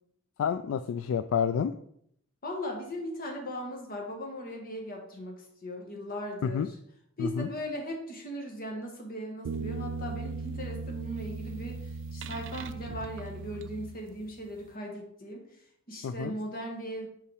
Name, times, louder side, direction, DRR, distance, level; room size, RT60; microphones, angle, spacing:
voice 1, 0.4-1.7 6.4-6.7 7.2-7.5 16.0-16.3, left 7 dB, 65° left, 11 dB, 0.3 m, -29 dB
voice 2, 2.4-6.8 7.2-15.4 15.9-17.1, equal, 45° left, 1 dB, 1.7 m, -38 dB
sound 1, 9.4-14.4, right 4 dB, 60° right, 0.4 m, -38 dB
5.5 x 5.1 x 4.8 m, 0.72 s
head